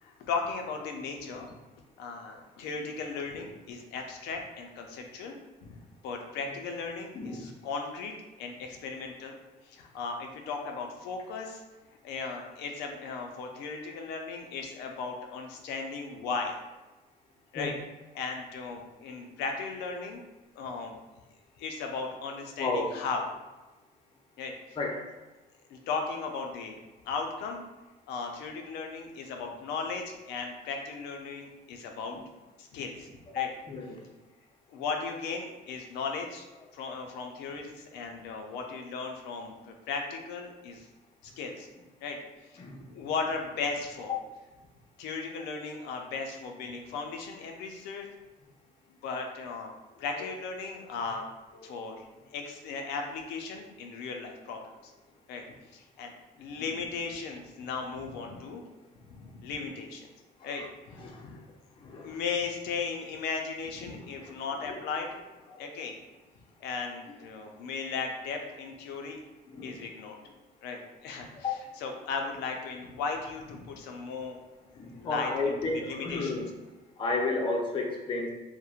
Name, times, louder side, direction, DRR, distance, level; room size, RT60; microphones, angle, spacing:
voice 1, 0.0-1.5 2.0-5.4 5.6-9.3 9.7-11.6 12.0-16.6 17.5-17.7 18.1-20.2 20.6-21.0 21.6-23.2 24.4-24.8 25.7-26.8 27.1-27.6 28.1-32.1 32.6-33.1 33.3-33.5 34.7-36.5 36.7-40.9 41.2-41.7 42.0-42.2 42.9-44.1 45.0-48.1 49.0-49.7 50.0-51.2 51.6-54.9 55.3-55.4 55.7-56.1 56.4-58.6 59.1-60.1 60.4-61.4 62.0-65.2 65.6-65.9 66.6-69.2 69.6-70.2 70.6-71.5 71.8-74.4 74.9-75.6 75.9-76.4, left 4 dB, 90° left, 3 dB, 0.4 m, -36 dB
voice 2, 7.1-7.5 17.6-17.7 22.6-22.9 24.8-25.0 32.1-32.2 33.4-34.0 42.6-42.9 56.6-56.7 60.4-60.6 61.0-61.4 61.8-62.1 64.0-64.3 64.7-64.8 65.5-65.7 69.5-69.8 71.4-71.5 74.7-76.4 77.0-78.3, left 3 dB, 30° left, 0 dB, 0.4 m, -32 dB
2.9 x 2.0 x 2.3 m, 1.1 s
cardioid pair, 110°, 17 cm